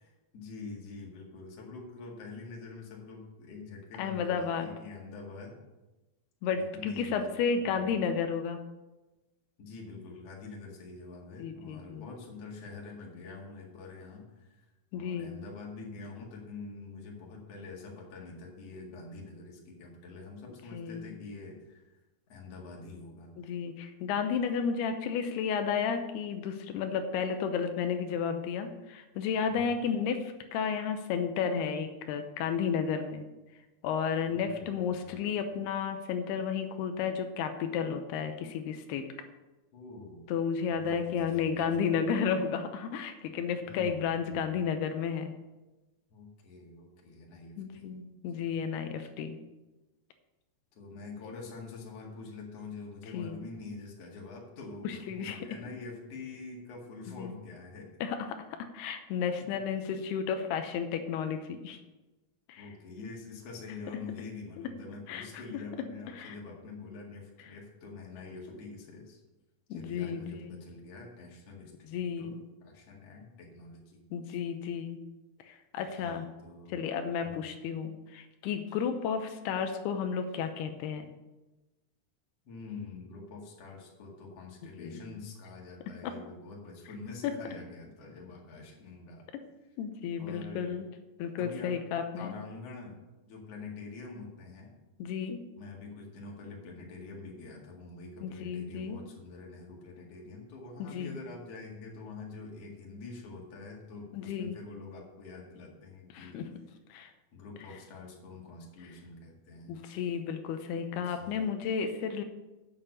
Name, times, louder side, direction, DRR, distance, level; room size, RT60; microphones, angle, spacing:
voice 1, 0.0-5.6 6.5-7.9 9.6-14.7 14.9-22.0 22.3-23.3 29.5-29.8 34.3-35.2 39.7-40.2 40.7-42.0 43.6-44.5 46.1-47.9 48.3-48.9 50.7-58.0 59.4-59.5 62.6-69.2 69.7-72.3 72.6-74.4 75.8-76.7 77.2-77.4 82.5-89.3 90.2-90.8 91.4-91.8 92.2-94.7 95.6-106.4 107.3-109.8 110.9-111.5, left 3 dB, 45° left, -1 dB, 2.6 m, -46 dB
voice 2, 4.0-4.7 6.4-8.6 11.4-12.1 14.9-15.3 20.7-21.0 23.4-33.3 33.8-39.1 40.3-45.3 47.6-49.4 53.1-53.4 54.8-55.4 57.2-57.3 58.0-58.4 58.7-61.8 62.5-62.7 65.1-65.4 66.1-66.4 69.7-70.6 71.9-72.4 74.1-75.0 75.4-76.3 76.7-81.1 84.8-85.0 86.0-86.1 87.2-87.3 89.3-89.4 89.8-90.9 91.2-92.4 95.0-95.4 98.2-99.0 100.8-101.2 104.1-104.6 106.1-106.4 106.9-107.1 109.7-112.2, left 6 dB, 90° left, 7 dB, 2.8 m, -32 dB
8.6 x 7.4 x 6.6 m, 1.1 s
omnidirectional pair, 4.6 m